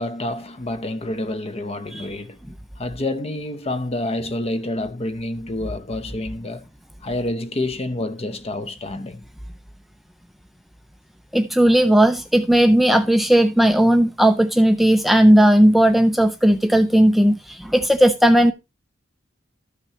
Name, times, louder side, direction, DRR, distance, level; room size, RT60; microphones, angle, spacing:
voice 1, 0.0-2.4 2.8-6.7 7.0-9.2, left 1 dB, 30° left, 0.8 m, -28 dB
voice 2, 11.3-18.5, right 1 dB, ahead, 0.4 m, -16 dB
13.0 x 6.0 x 2.9 m
head